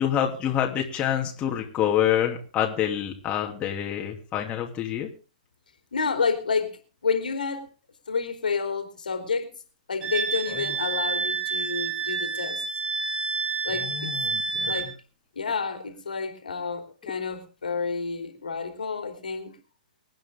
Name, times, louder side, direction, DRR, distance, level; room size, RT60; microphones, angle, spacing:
voice 1, 0.0-5.1 10.5-10.8 13.7-14.8, left 10 dB, 25° left, 2.8 m, -27 dB
voice 2, 5.9-7.6 8.1-9.5 9.9-12.6 13.6-14.3 14.7-14.9 15.3-19.6, left 5 dB, 75° left, 3.3 m, -29 dB
Wind instrument woodwind instrument, 10.0-14.9, right 5 dB, 20° right, 2.6 m, -29 dB
25.0 x 9.3 x 3.7 m
figure-of-eight pair, 115°, 5 cm